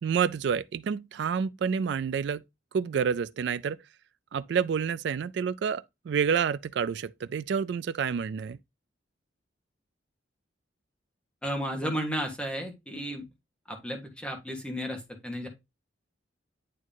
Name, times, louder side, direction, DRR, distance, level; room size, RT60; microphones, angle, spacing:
voice 1, 0.0-2.4 2.7-3.8 4.3-8.6, right 7 dB, 60° right, 0.3 m, -28 dB
voice 2, 11.4-13.2 13.7-15.5, equal, 5° left, 1.4 m, -33 dB
9.1 x 3.1 x 3.7 m
head